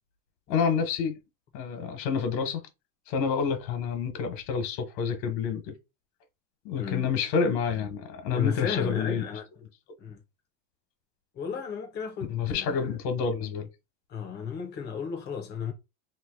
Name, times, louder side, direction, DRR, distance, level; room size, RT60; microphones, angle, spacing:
voice 1, 0.5-1.2 1.5-2.6 3.1-5.7 6.6-9.2 12.3-13.7, left 6 dB, 85° left, 1.2 m, -28 dB
voice 2, 6.8-7.1 8.3-9.5 10.0-10.2 11.3-13.0 14.1-15.7, left 7 dB, 20° left, 0.5 m, -34 dB
3.0 x 2.5 x 3.7 m
cardioid pair, 175°, 50 cm